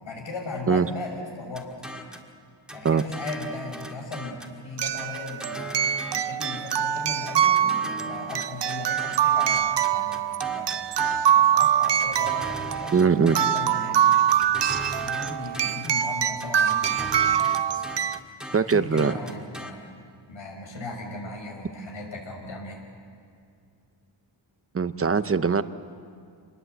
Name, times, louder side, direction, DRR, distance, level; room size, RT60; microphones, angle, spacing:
voice 1, 0.0-1.7 2.7-5.8 6.1-14.2 14.8-18.1 18.5-19.9 20.3-22.8, left 3 dB, 80° left, 1 dB, 6.2 m, -38 dB
sound 1, 1.5-2.3 2.7-4.6 5.0-6.9 7.3-11.4 11.8-13.7 14.1-16.0 16.4-19.7, equal, ahead, 1.9 m, -39 dB
sound 2, 3.3-3.4 4.8-18.2, right 9 dB, 60° right, 0.7 m, -24 dB
voice 2, 12.9-13.4 18.5-19.1 24.7-25.6, right 5 dB, 30° right, 12 dB, 0.8 m, -21 dB
28.0 x 21.0 x 8.1 m, 2.3 s
wide cardioid pair, 120°, 46 cm